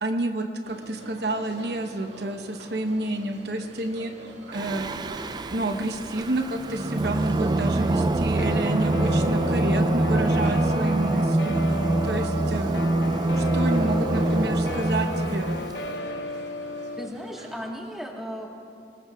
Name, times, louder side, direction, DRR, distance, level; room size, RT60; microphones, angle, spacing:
voice 1, 0.0-4.1 4.5-4.9 5.5-11.6 12.0-12.8 13.3-15.5, right 2 dB, 70° right, 5 dB, 1.0 m, -29 dB
sound 1, 0.6-17.6, right 1 dB, 90° right, 2.0 m, -44 dB
Singing, 4.5-15.9, right 2 dB, 25° right, 0.3 m, -25 dB
Guitar, 8.4-17.1, left 3 dB, 75° left, 0.6 m, -34 dB
voice 2, 17.0-18.5, equal, ahead, -1 dB, 1.4 m, -35 dB
24.0 x 19.5 x 2.4 m, 2.5 s
head